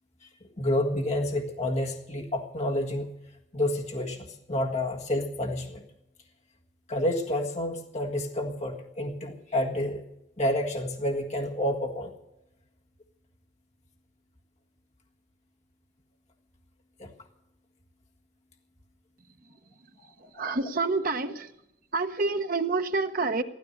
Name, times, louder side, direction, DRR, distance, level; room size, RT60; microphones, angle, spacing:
voice 1, 0.6-3.1 3.5-5.8 6.9-10.0 10.4-12.1 17.0-17.1 20.0-20.1, left 1 dB, 35° left, 0 dB, 1.6 m, -29 dB
voice 2, 19.4-19.9 20.2-21.6 21.9-23.4, right 3 dB, 50° right, 8 dB, 0.9 m, -29 dB
15.0 x 13.0 x 6.5 m, 0.86 s
head